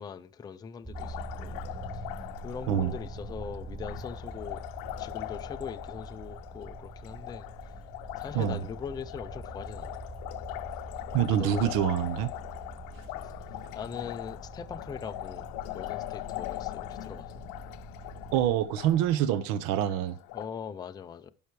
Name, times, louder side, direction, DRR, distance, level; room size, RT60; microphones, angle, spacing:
voice 1, 0.0-1.5 2.4-4.6 5.0-7.5 8.2-9.9 11.3-11.8 13.2-13.3 13.7-17.3 20.3-21.3, left 6 dB, 15° left, 0.3 m, -41 dB
sound 1, 0.8-18.5, right 2 dB, 15° right, 3.9 m, -44 dB
Liquid, 0.9-20.5, left 18 dB, 85° left, 0.6 m, -41 dB
voice 2, 11.1-12.3 18.3-20.2, right 11 dB, 75° right, 0.8 m, -26 dB
11.0 x 5.7 x 4.7 m
cardioid pair, 155°, 33 cm